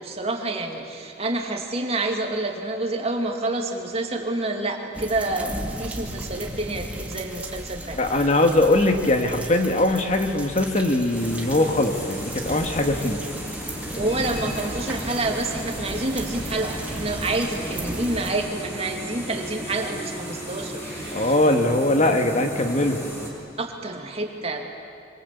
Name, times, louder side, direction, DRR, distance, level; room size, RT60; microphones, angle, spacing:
voice 1, 0.0-8.3 14.0-21.4 23.6-24.7, right 2 dB, 35° right, 3 dB, 2.6 m, -28 dB
sound 1, 4.9-18.3, right 1 dB, 5° right, 2.5 m, -36 dB
voice 2, 8.0-13.2 21.1-23.0, left 1 dB, 40° left, 5 dB, 1.8 m, -21 dB
sound 2, 11.1-23.3, equal, 15° left, 5.3 m, -35 dB
25.5 x 25.5 x 8.5 m, 2.3 s
head